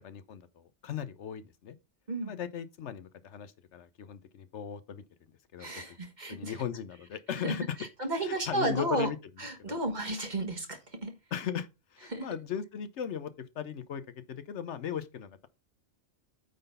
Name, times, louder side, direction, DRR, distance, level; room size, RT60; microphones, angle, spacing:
voice 1, 0.0-1.8 2.2-5.0 5.5-6.0 6.3-7.8 8.2-9.2 9.7-9.8 11.3-14.0 14.3-15.5, left 8 dB, 70° left, 1.0 m, -38 dB
voice 2, 5.6-6.5 7.4-7.5 8.0-9.1 9.4-11.1 12.1-12.3, right 1 dB, 40° right, 1.6 m, -33 dB
8.9 x 3.9 x 5.4 m
omnidirectional pair, 1.2 m